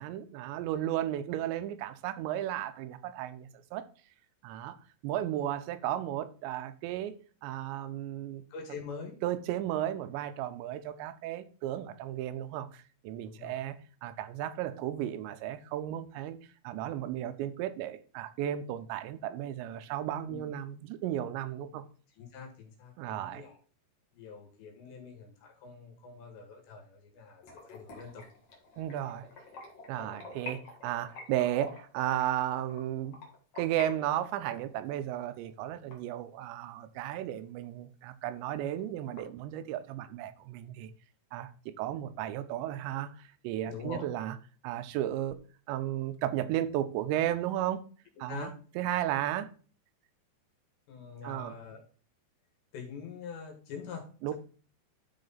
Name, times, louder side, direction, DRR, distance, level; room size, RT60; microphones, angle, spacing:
voice 1, 0.0-3.9 4.4-4.8 5.0-7.2 7.4-8.4 9.2-16.4 16.6-21.8 23.0-23.4 28.8-29.3 29.9-33.2 33.6-40.9 41.3-41.5 41.8-44.4 44.6-45.4 45.7-47.8 48.2-49.5 51.2-51.6 54.2-54.3, right 12 dB, 85° right, 3.0 m, -34 dB
voice 2, 8.5-9.1 13.2-13.6 20.3-20.5 22.2-23.6 24.1-28.3 43.7-44.1 48.3-48.5 50.9-51.8 52.7-54.3, left 5 dB, 80° left, 4.0 m, -44 dB
sound 1, 27.4-33.9 34.2-36.7 37.1-37.2 37.6-37.7 38.1-38.2 38.5-39.2, left 3 dB, 45° left, 2.2 m, -47 dB
12.0 x 4.2 x 4.0 m
omnidirectional pair, 5.1 m